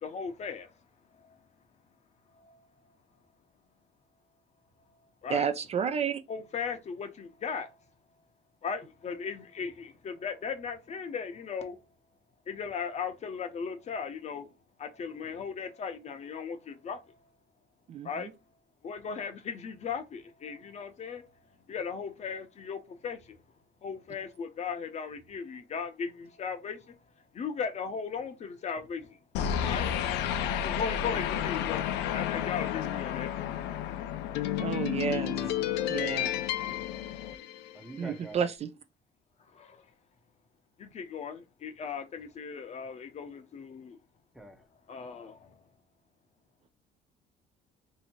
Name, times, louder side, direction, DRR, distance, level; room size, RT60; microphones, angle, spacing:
voice 1, 0.0-0.7 5.2-5.5 6.3-7.7 8.6-11.8 12.5-14.5 14.8-17.0 18.0-18.3 18.8-21.2 21.7-23.4 23.8-26.8 27.3-29.2 29.6-29.9 30.6-31.8 32.1-33.3 39.5-39.8 40.8-44.0 44.9-45.5, left 6 dB, 40° left, 0.7 m, -37 dB
voice 2, 5.3-6.2 17.9-18.3 34.6-35.4 35.9-36.3 38.0-38.7, right 7 dB, 40° right, 0.4 m, -31 dB
sound 1, 29.3-37.9, left 10 dB, 90° left, 0.4 m, -31 dB
voice 3, 35.1-35.7 37.7-38.5 44.3-44.6, right 2 dB, 5° right, 0.7 m, -46 dB
2.8 x 2.7 x 4.3 m
cardioid pair, 110°, 17 cm